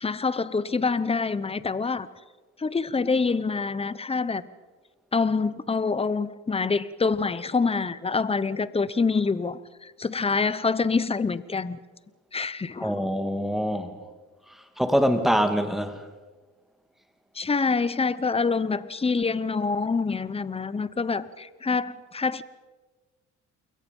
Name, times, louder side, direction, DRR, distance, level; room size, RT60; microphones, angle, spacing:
voice 1, 0.0-2.1 2.6-4.4 5.1-11.8 12.3-12.9 17.3-22.4, left 4 dB, 20° left, 16 dB, 1.0 m, -26 dB
voice 2, 12.8-13.9 14.8-16.0, equal, ahead, 7 dB, 2.5 m, -24 dB
29.0 x 22.0 x 5.5 m, 1.3 s
cardioid pair, 90°, 30 cm